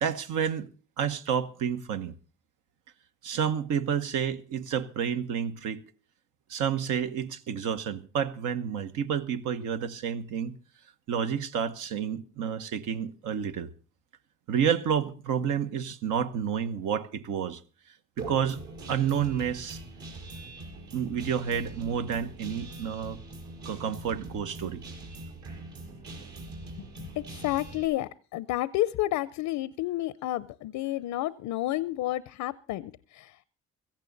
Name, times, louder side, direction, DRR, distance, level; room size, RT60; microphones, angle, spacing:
voice 1, 0.0-0.7 1.0-2.1 3.2-5.8 6.5-10.6 11.1-13.7 14.5-17.6 18.2-18.6 18.9-19.8 20.9-23.2 23.6-24.8, right 8 dB, 85° right, 1.2 m, -30 dB
Guitar, 18.2-27.9, right 2 dB, 70° right, 7.2 m, -42 dB
voice 2, 27.2-33.4, left 16 dB, 90° left, 0.6 m, -30 dB
16.5 x 14.5 x 4.0 m
cardioid pair, 90°, 30 cm